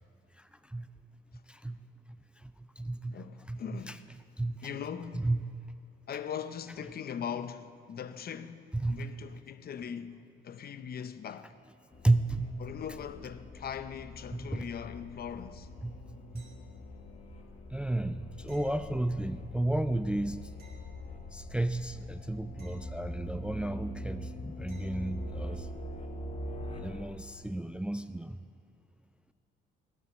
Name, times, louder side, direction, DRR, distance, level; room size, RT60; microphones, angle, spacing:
voice 1, 1.5-1.8 2.4-2.5 2.8-3.2 3.5-4.0 4.4-4.7 5.1-5.4 8.8-9.1 12.0-12.5 14.3-14.7 15.8-16.5 17.7-20.5 21.3-25.7 26.8-28.4, right 2 dB, 5° right, 0.3 m, -32 dB
voice 2, 3.1-4.0 4.6-5.3 6.1-11.5 12.6-15.7, left 8 dB, 50° left, 0.6 m, -40 dB
sound 1, 11.9-27.0, left 1 dB, 30° left, 1.5 m, -43 dB
sound 2, 16.4-17.1 18.5-19.6 20.6-21.6 22.6-23.6 24.7-25.3 28.1-28.2, right 2 dB, 50° right, 3.1 m, -62 dB
19.0 x 8.5 x 4.2 m
cardioid pair, 90°, 20 cm